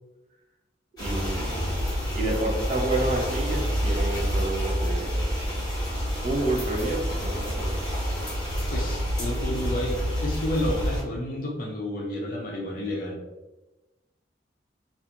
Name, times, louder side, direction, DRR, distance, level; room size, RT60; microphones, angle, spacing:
sound 1, 1.0-11.0, equal, 20° left, 1.0 m, -28 dB
voice 1, 1.0-1.9 2.1-5.3 6.2-7.8, right 2 dB, 35° right, -2 dB, 0.5 m, -29 dB
voice 2, 8.7-13.2, left 1 dB, 45° left, -1 dB, 0.5 m, -30 dB
2.5 x 2.3 x 2.8 m, 1.1 s
head